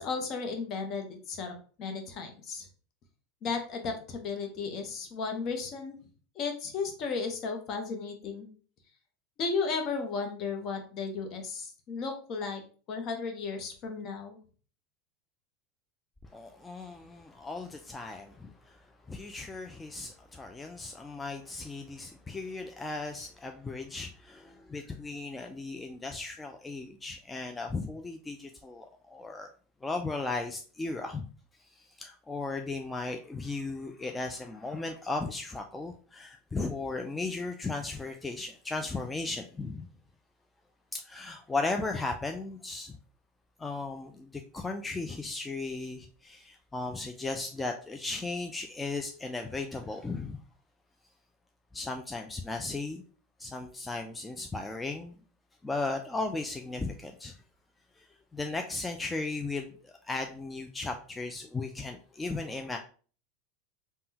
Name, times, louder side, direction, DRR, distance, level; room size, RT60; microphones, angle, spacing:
voice 1, 0.0-2.7 3.4-6.0 6.3-8.5 9.4-12.6 12.9-14.4, left 4 dB, 45° left, 4 dB, 0.8 m, -34 dB
voice 2, 16.3-29.5 29.8-31.3 31.6-39.9 40.9-43.0 43.6-50.4 51.7-53.0 53.4-55.2 55.6-57.4 58.0-58.1 58.3-62.8, left 3 dB, 15° left, 4 dB, 0.3 m, -36 dB
3.5 x 2.2 x 2.7 m, 0.40 s
hypercardioid pair, 90°, 0 cm